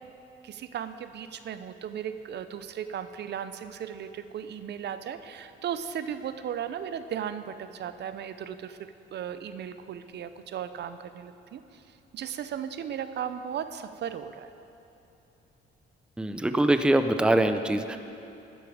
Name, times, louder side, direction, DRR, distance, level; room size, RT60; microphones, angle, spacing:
voice 1, 0.4-8.8 9.1-11.8 12.1-14.5, right 8 dB, 60° right, 11 dB, 0.5 m, -36 dB
voice 2, 16.2-18.0, right 1 dB, 5° right, 9 dB, 0.5 m, -23 dB
12.5 x 10.0 x 4.8 m, 2.9 s
cardioid pair, 90°, 20 cm